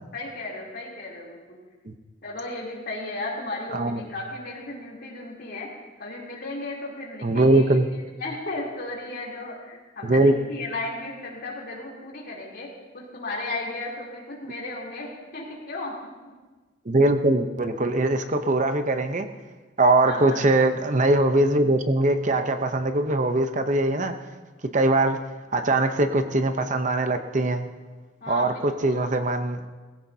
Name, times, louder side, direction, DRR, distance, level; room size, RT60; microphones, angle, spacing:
voice 1, 0.1-1.4 2.2-5.7 6.0-12.7 12.9-16.0 16.2-16.3 20.0-20.4 28.2-29.1, left 2 dB, 55° left, -3 dB, 3.3 m, -35 dB
voice 2, 7.2-7.9 10.0-10.3 16.9-19.3 19.8-24.1 24.7-25.2 25.5-27.7 28.3-29.7, right 2 dB, 40° right, 7 dB, 0.8 m, -21 dB
19.5 x 16.0 x 2.8 m, 1.3 s
head